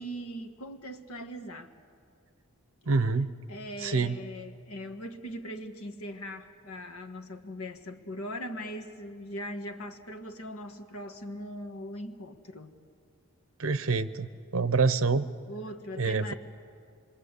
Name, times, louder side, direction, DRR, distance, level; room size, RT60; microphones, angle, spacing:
voice 1, 0.0-1.7 3.5-12.7 15.5-16.3, equal, 80° left, 7 dB, 1.6 m, -40 dB
voice 2, 2.9-3.3 3.8-4.2 13.6-15.3 16.0-16.3, right 4 dB, 70° right, 13 dB, 0.8 m, -26 dB
26.0 x 22.0 x 8.2 m, 2.3 s
head